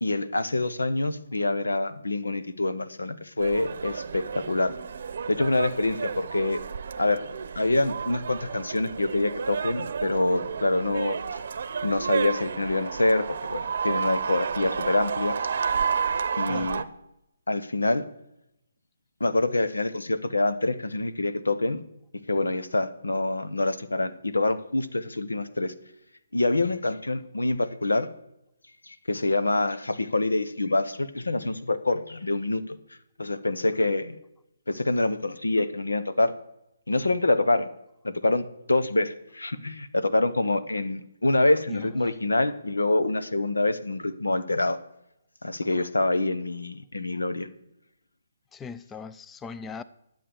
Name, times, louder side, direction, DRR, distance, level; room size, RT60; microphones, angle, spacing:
voice 1, 0.0-4.7 5.3-6.6 7.0-7.2 7.6-11.2 11.8-15.4 16.4-16.8 17.5-18.0 19.2-21.8 22.3-25.7 26.3-28.1 28.9-32.8 33.2-34.1 34.7-36.3 36.9-37.7 38.0-44.8 45.4-47.5, left 2 dB, 85° left, 0.9 m, -26 dB
sound 1, 3.4-16.8, right 6 dB, 60° right, 0.8 m, -31 dB
voice 2, 41.7-42.1 48.5-49.8, left 5 dB, 10° left, 0.4 m, -40 dB
12.0 x 7.6 x 7.0 m
figure-of-eight pair, 145°, 0 cm